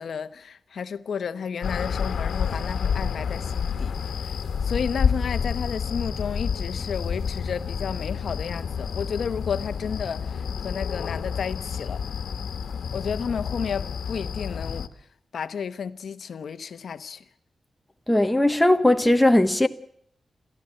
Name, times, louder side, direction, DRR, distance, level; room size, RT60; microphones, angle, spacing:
voice 1, 0.0-4.4 4.6-12.0 12.9-14.9 15.3-17.2, left 6 dB, 65° left, 0.9 m, -32 dB
sound 1, 1.6-14.9, left 6 dB, 80° left, 1.4 m, -29 dB
voice 2, 18.1-19.7, left 1 dB, 5° left, 1.0 m, -18 dB
29.5 x 14.0 x 7.7 m
wide cardioid pair, 165°, 0 cm